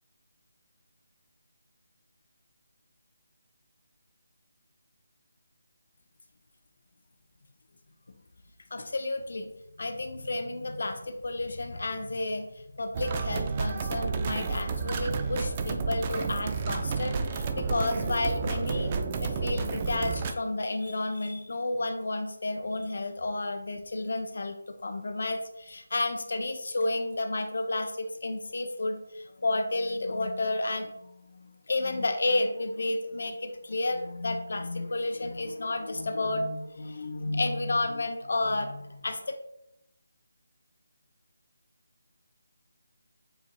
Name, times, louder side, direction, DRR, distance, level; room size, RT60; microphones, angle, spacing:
voice 1, 8.7-9.5 9.8-18.9 19.2-24.6 24.8-39.3, left 2 dB, 65° left, 7 dB, 0.5 m, -31 dB
sound 1, 12.9-20.3, right 4 dB, 30° right, 0.3 m, -31 dB
7.6 x 2.8 x 2.2 m, 0.85 s
figure-of-eight pair, 160°, 0 cm